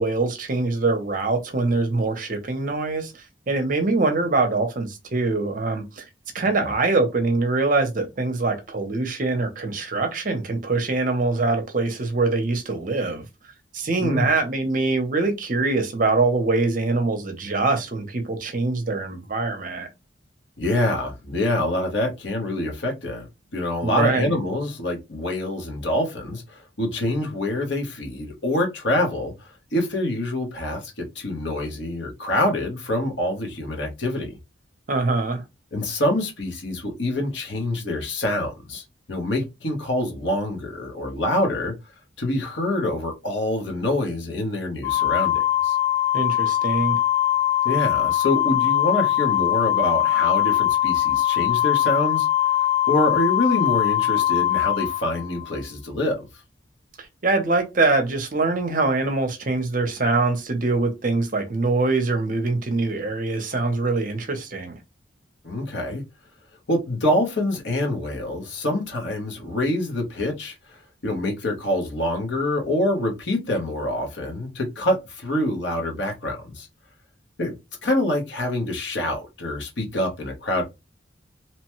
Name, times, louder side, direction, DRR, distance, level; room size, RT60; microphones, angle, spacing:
voice 1, 0.0-6.0 6.3-13.2 13.7-19.9 23.8-24.3 34.9-35.4 46.1-47.0 57.0-64.7, right 3 dB, 45° right, 0.6 m, -23 dB
voice 2, 20.6-34.4 35.7-38.8 39.1-41.7 42.2-45.8 47.6-56.3 65.4-66.0 66.7-76.7 77.4-77.5 77.8-80.6, left 1 dB, 65° left, 0.9 m, -26 dB
Organ, 44.8-55.6, left 13 dB, 20° left, 0.4 m, -21 dB
2.9 x 2.2 x 3.0 m
head